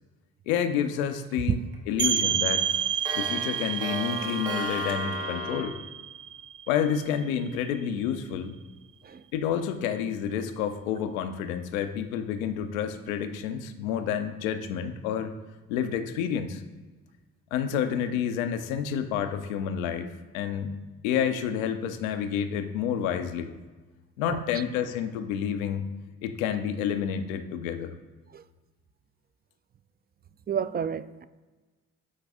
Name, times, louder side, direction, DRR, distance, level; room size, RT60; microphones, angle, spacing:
voice 1, 0.5-1.6 1.9-2.7 3.1-5.8 6.7-8.6 9.3-15.3 15.7-16.6 17.5-20.7 21.0-23.5 24.2-25.9 26.2-27.9, left 8 dB, 90° left, 9 dB, 0.6 m, -29 dB
Clock, 0.9-1.3 1.7-1.8 2.2-5.6, right 1 dB, 70° right, 1.6 m, -34 dB
sound 1, 2.0-7.5, right 8 dB, 50° right, 1.3 m, -30 dB
voice 2, 30.5-31.3, right 7 dB, 25° right, 14 dB, 0.3 m, -31 dB
8.4 x 4.7 x 3.5 m, 1.3 s
hypercardioid pair, 45°, 40 cm